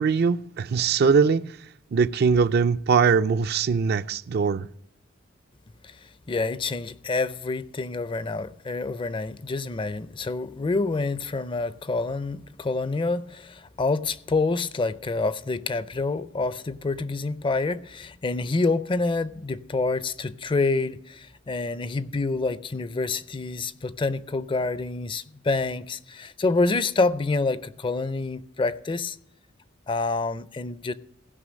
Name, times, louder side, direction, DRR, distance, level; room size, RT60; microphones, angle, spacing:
voice 1, 0.0-1.5 1.9-4.7, right 5 dB, 55° right, 0.4 m, -21 dB
voice 2, 5.8-29.2 29.9-30.9, left 3 dB, 25° left, 0.4 m, -27 dB
16.0 x 5.6 x 6.3 m
head